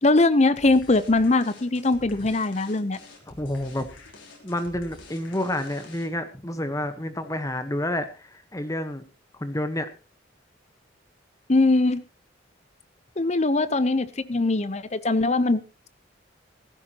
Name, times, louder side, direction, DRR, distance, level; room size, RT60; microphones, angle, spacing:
voice 1, 0.0-3.0 11.5-12.0 13.2-15.6, left 2 dB, 35° left, 14 dB, 0.8 m, -21 dB
sound 1, 0.6-6.3, left 2 dB, 90° left, 3.7 m, -47 dB
voice 2, 3.3-3.9 4.4-9.0 9.4-9.9, left 1 dB, 20° left, 10 dB, 1.2 m, -29 dB
16.0 x 14.5 x 3.0 m, 0.31 s
head